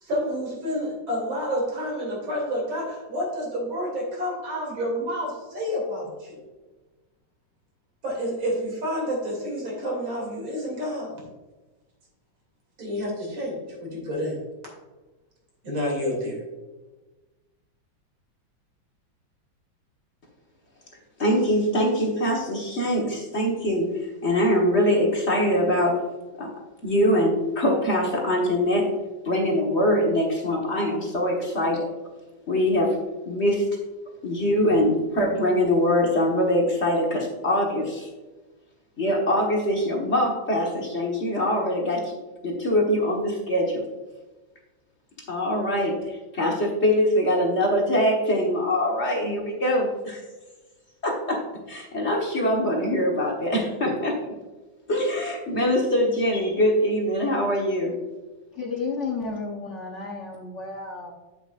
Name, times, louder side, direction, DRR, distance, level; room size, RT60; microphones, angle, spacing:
voice 1, 0.0-6.4 8.0-11.2 12.8-14.5 15.6-16.4, equal, 85° right, -2 dB, 3.5 m, -29 dB
voice 2, 21.2-26.0 26.4-26.5 26.8-28.9 29.2-31.9 32.5-33.0 33.2-33.7 34.2-38.1 39.0-42.1 42.4-43.8 45.3-50.2 51.0-54.2 54.9-57.9, equal, 40° left, -1 dB, 1.5 m, -23 dB
voice 3, 58.5-61.1, left 4 dB, 55° left, 0 dB, 0.8 m, -32 dB
8.0 x 8.0 x 2.5 m, 1.2 s
omnidirectional pair, 2.1 m